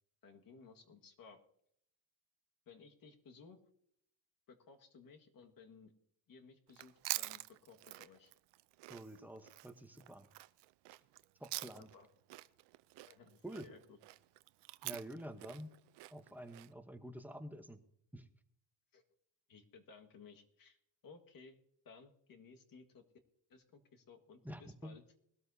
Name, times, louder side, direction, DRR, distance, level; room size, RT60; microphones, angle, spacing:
voice 1, 0.2-1.4 2.7-3.6 4.5-5.9 6.3-8.3 11.7-12.1 13.1-14.0 18.9-19.0 19.5-20.8 21.0-21.6 21.9-23.0 23.5-25.0, left 5 dB, 50° left, 4 dB, 1.8 m, -59 dB
Chewing mastication, 6.7-12.0 12.3-16.7, right 18 dB, 70° right, 0.6 m, -46 dB
voice 2, 8.9-10.3 11.4-11.9 13.4-13.7 14.8-15.8 16.1-17.8 18.1-18.3 24.4-25.0, right 1 dB, 5° right, 7 dB, 0.9 m, -48 dB
20.5 x 13.0 x 2.7 m, 0.73 s
cardioid pair, 110°, 44 cm